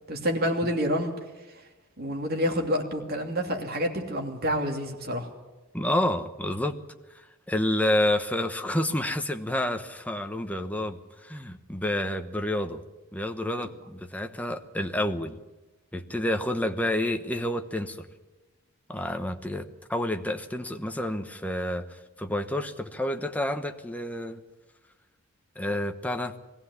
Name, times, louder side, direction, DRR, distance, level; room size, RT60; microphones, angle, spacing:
voice 1, 0.1-1.1 2.0-5.3, equal, 45° right, 3 dB, 2.8 m, -28 dB
voice 2, 5.7-6.8 7.5-12.8 13.1-15.4 15.9-18.1 18.9-24.4 25.6-26.3, left 1 dB, 5° left, 6 dB, 1.0 m, -29 dB
21.0 x 15.5 x 9.6 m, 1.1 s
head